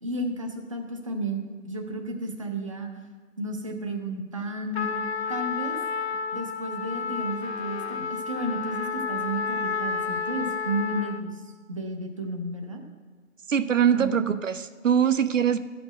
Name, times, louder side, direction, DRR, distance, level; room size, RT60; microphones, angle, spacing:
voice 1, 0.0-2.9 3.4-5.0 5.3-5.8 6.3-12.8 13.9-14.2, right 1 dB, 25° right, 3 dB, 0.6 m, -32 dB
Trumpet, 4.7-11.3, left 5 dB, 50° left, 0.6 m, -31 dB
voice 2, 13.5-15.6, right 8 dB, 65° right, 11 dB, 0.6 m, -22 dB
12.0 x 5.2 x 7.7 m, 1.5 s
figure-of-eight pair, 160°, 41 cm